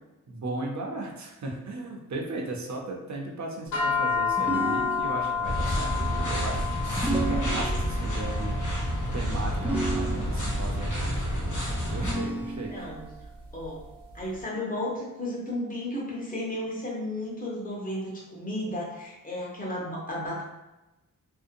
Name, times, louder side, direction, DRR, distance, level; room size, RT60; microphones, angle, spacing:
voice 1, 0.3-11.3 11.9-12.9, right 2 dB, 55° right, 0 dB, 0.6 m, -36 dB
sound 1, 3.7-14.2, left 6 dB, 85° left, 1.3 m, -33 dB
sound 2, 4.4-5.5 7.0-8.1 9.6-10.6 12.0-13.0, right 2 dB, 5° right, 0.3 m, -32 dB
sound 3, 5.4-12.1, equal, 60° left, 0.8 m, -29 dB
voice 2, 12.7-13.0 13.5-13.8 14.1-20.4, left 1 dB, 25° left, -5 dB, 0.9 m, -33 dB
2.6 x 2.1 x 2.5 m, 1.0 s
wide cardioid pair, 95°, 34 cm